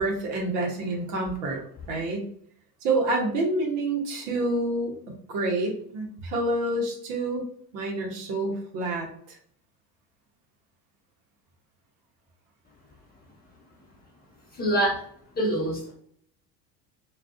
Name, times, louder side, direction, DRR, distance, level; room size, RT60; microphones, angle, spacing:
voice 1, 0.0-1.6 1.9-2.3 2.8-4.9 5.3-7.4 7.7-9.4, right 2 dB, 60° right, 0 dB, 0.9 m, -28 dB
voice 2, 14.5-15.0 15.3-15.9, right 1 dB, 20° left, -3 dB, 1.0 m, -25 dB
2.4 x 2.4 x 2.3 m, 0.62 s
hypercardioid pair, 75°, 49 cm